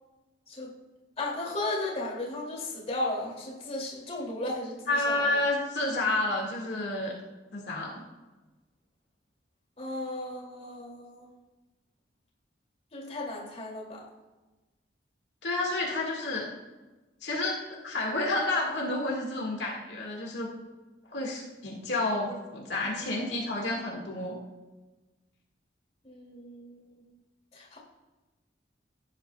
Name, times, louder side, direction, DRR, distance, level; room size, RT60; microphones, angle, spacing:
voice 1, 1.2-5.4 9.8-11.2 12.9-14.0 22.8-23.1 26.0-27.0 27.5-27.8, left 2 dB, 35° left, -3 dB, 2.5 m, -35 dB
voice 2, 4.9-7.1 7.5-8.0 15.4-16.5 17.2-20.5 21.1-24.4, left 2 dB, 70° left, -2 dB, 1.7 m, -30 dB
15.0 x 9.4 x 2.3 m, 1.2 s
head